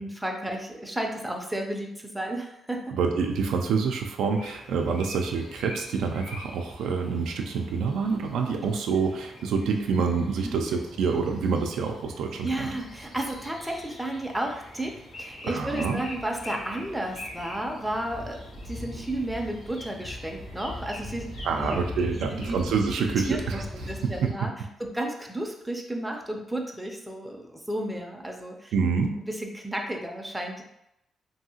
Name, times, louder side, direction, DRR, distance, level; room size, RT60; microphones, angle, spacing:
voice 1, 0.0-2.9 10.4-10.7 12.4-21.8 22.1-22.6 23.2-24.5 24.8-28.7 29.3-30.6, right 1 dB, 5° right, 1 dB, 0.4 m, -33 dB
voice 2, 2.9-12.7 15.4-16.0 21.4-23.9 24.2-24.3 28.7-29.2, right 5 dB, 90° right, 3 dB, 0.3 m, -27 dB
sound 1, 4.3-24.3, left 1 dB, 70° left, 1.2 m, -42 dB
2.7 x 2.7 x 2.7 m, 0.80 s
cardioid pair, 120°, 0 cm